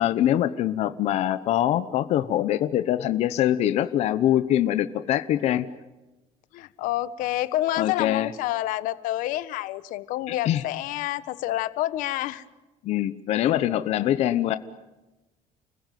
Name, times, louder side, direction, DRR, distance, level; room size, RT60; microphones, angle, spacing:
voice 1, 0.0-5.7 7.8-8.3 10.3-10.6 12.8-14.6, left 12 dB, 50° left, 12 dB, 0.9 m, -23 dB
voice 2, 6.5-12.4 14.0-14.1, left 15 dB, 75° left, 15 dB, 1.2 m, -28 dB
30.0 x 20.5 x 9.3 m, 1.1 s
cardioid pair, 170°, 14 cm